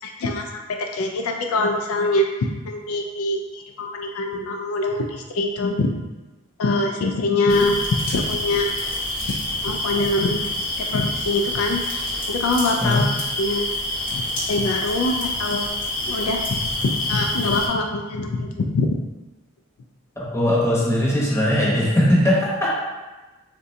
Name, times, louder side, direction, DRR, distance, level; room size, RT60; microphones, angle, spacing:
voice 1, 0.0-5.9 6.6-8.7 9.3-10.5 10.9-11.8 12.3-13.1 13.4-13.8 14.1-14.2 14.5-15.8 16.1-19.0, left 2 dB, 80° left, 3 dB, 0.3 m, -24 dB
sound 1, 7.5-17.7, left 1 dB, 40° left, 0.8 m, -27 dB
voice 2, 20.2-22.8, left 1 dB, 15° left, -7 dB, 0.8 m, -19 dB
3.7 x 2.2 x 2.6 m, 1.1 s
head